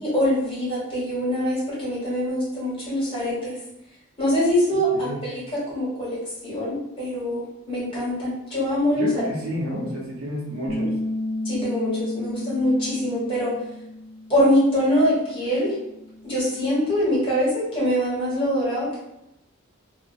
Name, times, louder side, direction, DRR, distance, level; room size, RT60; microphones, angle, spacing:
voice 1, 0.0-3.6 4.2-6.2 6.4-9.1 11.4-13.5 14.3-15.7 16.2-19.0, equal, 25° left, -9 dB, 1.1 m, -23 dB
voice 2, 9.0-10.9, equal, 80° right, -4 dB, 0.8 m, -30 dB
Bass guitar, 10.7-16.9, left 1 dB, 10° left, 0.4 m, -33 dB
2.4 x 2.1 x 2.5 m, 0.87 s
head